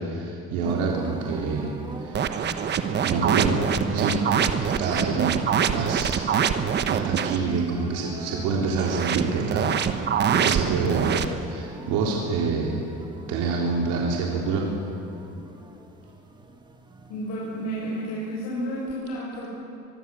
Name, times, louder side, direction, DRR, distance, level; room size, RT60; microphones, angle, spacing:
voice 1, 0.0-1.7 2.0-2.5 3.0-3.6 3.9-4.2 4.6-6.2 6.9-9.7 10.3-12.8 13.3-14.7, right 4 dB, 85° right, -1 dB, 3.8 m, -27 dB
sound 1, 0.6-18.9, right 2 dB, 15° right, 1.9 m, -40 dB
sound 2, 2.1-7.4 8.8-11.3, right 7 dB, 35° right, 1.2 m, -24 dB
voice 2, 17.1-19.5, right 1 dB, 60° left, -7 dB, 7.4 m, -31 dB
24.0 x 22.5 x 7.7 m, 3.0 s
cardioid pair, 170°, 30 cm